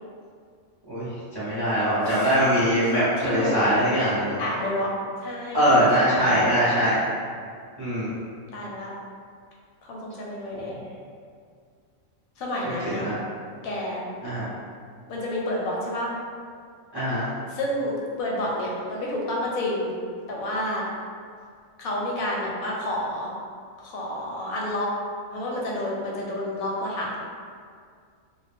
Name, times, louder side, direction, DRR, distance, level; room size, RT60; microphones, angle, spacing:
voice 1, 1.3-4.4 5.5-7.0 7.8-8.1 10.5-10.6 12.8-13.2 14.2-14.5 16.9-17.2, equal, 30° right, -11 dB, 0.5 m, -22 dB
voice 2, 2.0-2.3 2.8-3.7 4.4-4.9 5.2-6.4 8.5-8.9 9.9-10.8 12.4-13.1 13.6-14.0 15.1-16.1 17.5-19.9 20.3-20.9 21.8-23.3 23.8-24.9 25.3-27.2, left 1 dB, 85° left, -3 dB, 1.0 m, -29 dB
2.4 x 2.1 x 3.2 m, 2.1 s
omnidirectional pair, 1.4 m